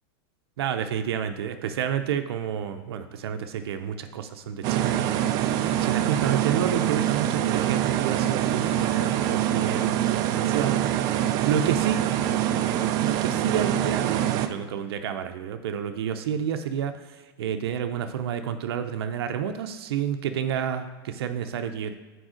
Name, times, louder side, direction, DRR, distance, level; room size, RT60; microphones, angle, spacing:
voice 1, 0.6-12.1 13.0-21.9, right 8 dB, 85° right, 7 dB, 0.6 m, -30 dB
sound 1, 4.6-14.5, right 11 dB, 30° right, 0.4 m, -25 dB
6.3 x 4.7 x 4.9 m, 1.3 s
supercardioid pair, 165°, 13 cm